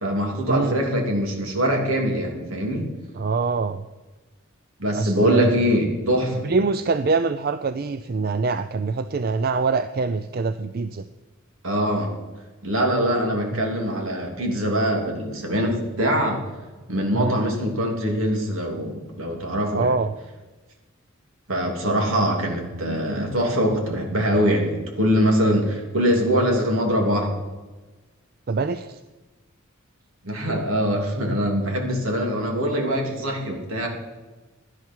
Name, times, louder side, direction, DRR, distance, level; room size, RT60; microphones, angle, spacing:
voice 1, 0.0-2.9 4.8-6.5 11.6-12.1 12.6-16.5 16.9-19.9 21.5-27.3 30.2-33.9, equal, 70° right, 1 dB, 3.1 m, -23 dB
voice 2, 3.2-3.8 5.0-5.5 6.4-11.1 13.5-13.6 17.1-17.4 19.7-20.1 28.5-29.0, right 4 dB, 45° right, 11 dB, 0.4 m, -24 dB
17.0 x 11.5 x 4.6 m, 1.2 s
head